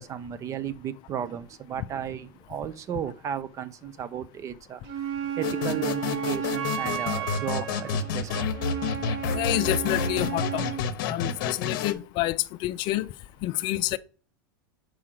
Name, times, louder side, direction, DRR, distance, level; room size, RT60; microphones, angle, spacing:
voice 1, 0.0-4.8 5.4-8.5, right 9 dB, 25° right, 0.5 m, -34 dB
Wind instrument woodwind instrument, 4.8-10.9, right 8 dB, 50° right, 1.3 m, -33 dB
sound 1, 5.4-11.9, left 6 dB, 65° left, 0.9 m, -30 dB
voice 2, 9.3-10.6 11.0-13.1 13.4-14.0, left 16 dB, 40° left, 0.4 m, -28 dB
4.8 x 4.8 x 5.9 m
supercardioid pair, 135°, 12 cm